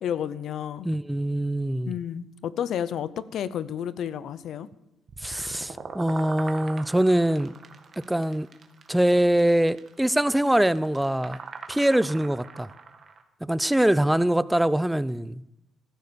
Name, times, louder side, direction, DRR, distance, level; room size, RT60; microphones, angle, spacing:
voice 1, 0.0-0.9 1.9-4.7, left 9 dB, 70° left, 16 dB, 0.8 m, -31 dB
voice 2, 0.8-1.9 5.2-7.5 8.0-8.5 8.9-11.4 11.7-12.7 13.4-15.4, right 1 dB, 5° right, 17 dB, 0.7 m, -23 dB
sound 1, 5.1-13.2, right 5 dB, 50° right, 2.2 m, -42 dB
15.0 x 13.0 x 7.0 m, 0.85 s
cardioid pair, 90°, 0 cm